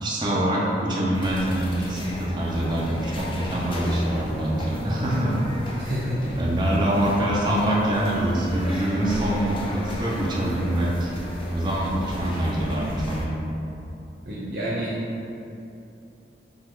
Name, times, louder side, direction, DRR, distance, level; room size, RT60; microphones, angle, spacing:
voice 1, 0.0-5.4 6.4-11.1 11.5-13.4, right 1 dB, 25° right, -6 dB, 0.6 m, -24 dB
sound 1, 1.1-13.3, left 1 dB, 30° left, 0.4 m, -35 dB
voice 2, 5.8-6.4 14.2-15.0, equal, 70° right, -8 dB, 0.8 m, -28 dB
5.6 x 2.3 x 3.7 m, 2.7 s
head